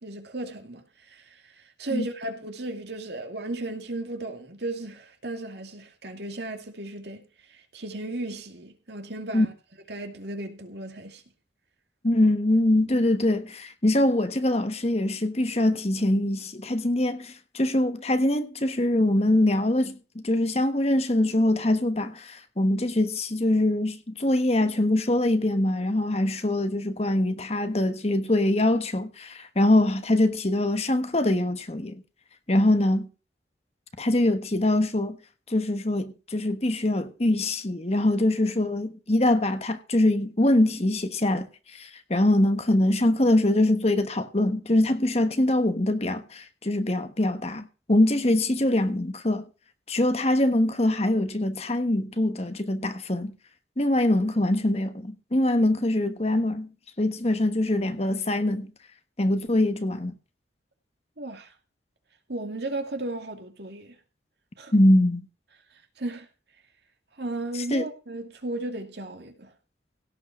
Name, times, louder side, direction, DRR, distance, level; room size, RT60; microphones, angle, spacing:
voice 1, 0.0-7.2 7.5-9.5 9.9-11.2 61.2-61.5 62.3-63.9 64.6-64.7 66.0-66.3 67.2-69.5, right 2 dB, 65° right, 2.5 m, -35 dB
voice 2, 12.0-32.0 32.5-33.1 34.0-35.2 35.5-41.5 41.7-49.4 49.9-53.3 53.8-56.7 57.0-58.7 59.2-60.1 64.7-65.2 67.7-67.9, left 1 dB, 35° left, 1.2 m, -23 dB
17.0 x 5.7 x 6.0 m
head